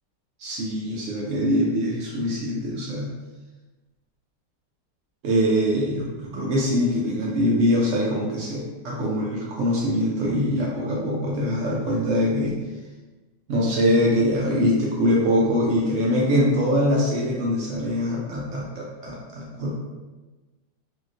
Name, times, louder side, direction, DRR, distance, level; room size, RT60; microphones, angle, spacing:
voice 1, 0.4-3.1 5.2-12.6 13.5-19.7, equal, 85° right, -4 dB, 0.6 m, -23 dB
2.9 x 2.8 x 2.4 m, 1.2 s
omnidirectional pair, 1.9 m